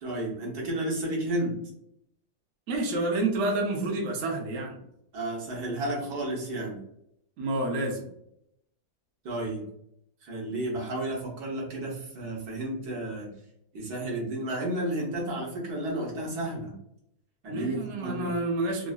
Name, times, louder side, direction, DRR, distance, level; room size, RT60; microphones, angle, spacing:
voice 1, 0.0-1.6 5.1-6.8 9.2-9.6 10.2-13.3 13.7-16.7 17.4-18.3, right 1 dB, 75° right, -2 dB, 1.5 m, -32 dB
voice 2, 2.7-4.8 7.4-8.0 17.5-18.9, right 2 dB, 60° right, 0 dB, 0.9 m, -29 dB
3.7 x 2.1 x 2.3 m, 0.75 s
omnidirectional pair, 1.7 m